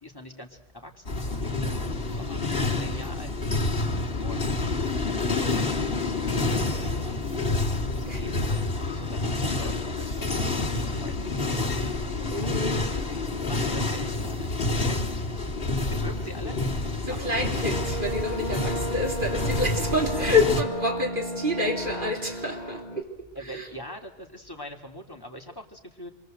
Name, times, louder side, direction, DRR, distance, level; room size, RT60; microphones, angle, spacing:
voice 1, 0.0-3.6 4.2-4.5 5.8-7.3 7.9-11.8 12.2-14.6 14.8-15.1 15.9-16.7 17.1-18.0 20.1-20.4 23.3-26.1, equal, 20° left, 2.9 m, -44 dB
sound 1, 1.1-20.6, left 3 dB, 60° left, 3.3 m, -28 dB
voice 2, 8.0-8.4 12.3-13.0 17.0-23.7, left 2 dB, 50° right, 3.7 m, -28 dB
sound 2, 17.7-23.0, right 1 dB, 40° left, 2.1 m, -34 dB
27.0 x 23.0 x 7.9 m
omnidirectional pair, 1.1 m